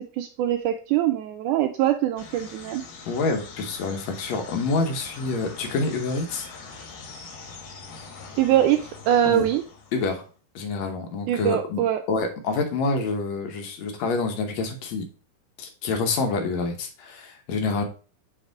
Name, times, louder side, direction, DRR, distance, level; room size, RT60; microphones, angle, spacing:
voice 1, 0.2-2.8 8.4-9.6 11.3-12.0, right 11 dB, 80° right, 6 dB, 1.9 m, -23 dB
sound 1, 2.2-10.3, left 4 dB, 90° left, 3.2 m, -43 dB
voice 2, 3.1-6.5 9.3-9.4 9.9-10.2 10.6-11.8 12.1-15.1 15.6-17.8, left 3 dB, 65° left, 4 dB, 2.0 m, -27 dB
6.6 x 3.6 x 4.6 m, 0.37 s
omnidirectional pair, 3.8 m